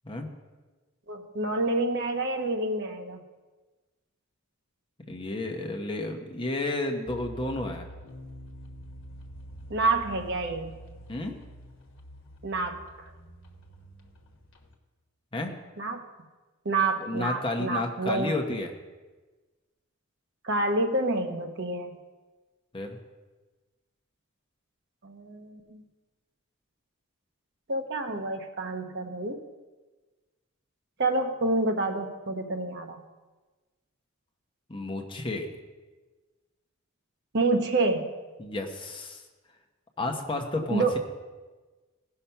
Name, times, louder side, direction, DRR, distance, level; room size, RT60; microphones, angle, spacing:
voice 1, 1.1-3.2 9.7-10.8 12.4-12.8 15.8-16.0 16.6-18.3 20.4-22.0 25.0-25.8 27.7-29.4 31.0-33.0 37.3-38.1 40.7-41.0, right 2 dB, 55° right, 5 dB, 1.0 m, -28 dB
voice 2, 5.1-7.9 11.1-11.4 15.3-15.5 17.0-18.7 22.7-23.0 34.7-35.5 38.4-39.2 40.0-41.0, left 2 dB, 25° left, 3 dB, 0.9 m, -31 dB
sound 1, 7.1-14.7, equal, 60° left, 1.3 m, -46 dB
16.0 x 5.8 x 5.6 m, 1.3 s
head